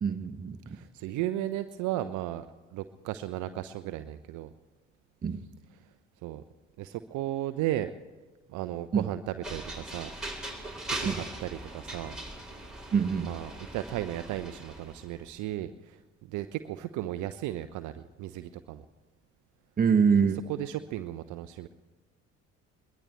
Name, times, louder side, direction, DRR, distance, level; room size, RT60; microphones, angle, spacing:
voice 1, 0.0-0.6 5.2-5.4 8.9-9.1 11.0-11.2 12.9-13.3 19.8-20.4, right 6 dB, 25° right, 7 dB, 1.1 m, -24 dB
voice 2, 0.7-2.5 2.7-4.5 6.2-6.4 6.8-7.9 8.5-10.1 10.4-10.5 10.9-12.2 13.2-16.0 16.3-18.8 20.5-21.7, right 13 dB, 50° right, 11 dB, 0.7 m, -35 dB
sound 1, 9.4-15.1, right 1 dB, ahead, 3.8 m, -40 dB
22.0 x 19.5 x 3.2 m, 1.2 s
figure-of-eight pair, 50°, 38 cm